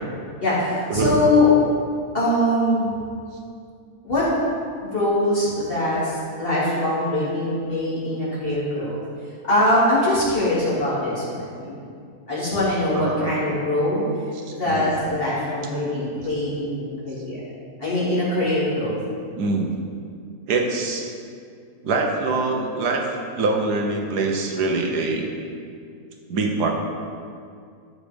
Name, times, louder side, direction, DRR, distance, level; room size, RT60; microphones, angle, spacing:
voice 1, 0.4-1.5 2.1-3.0 4.0-4.3 4.9-9.0 9.4-11.8 12.3-14.0 14.5-17.4 17.8-18.9, left 1 dB, 35° left, -9 dB, 3.1 m, -22 dB
voice 2, 12.9-13.6 14.6-15.2 19.4-19.7 20.5-21.1 21.8-23.1 23.4-25.3 26.3-26.7, right 3 dB, 85° right, 2 dB, 1.7 m, -24 dB
12.5 x 5.0 x 5.3 m, 2.3 s
omnidirectional pair, 1.7 m